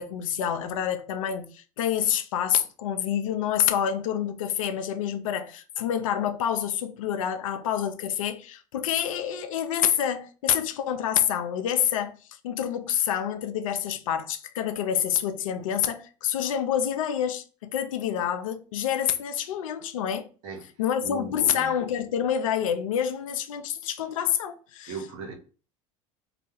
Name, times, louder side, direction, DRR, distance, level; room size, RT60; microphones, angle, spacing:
voice 1, 0.0-20.3 20.8-25.0, left 9 dB, 80° left, 0.4 m, -27 dB
voice 2, 21.0-21.7 24.9-25.3, right 4 dB, 60° right, 0.8 m, -37 dB
2.3 x 2.1 x 2.8 m
hypercardioid pair, 75°, 17 cm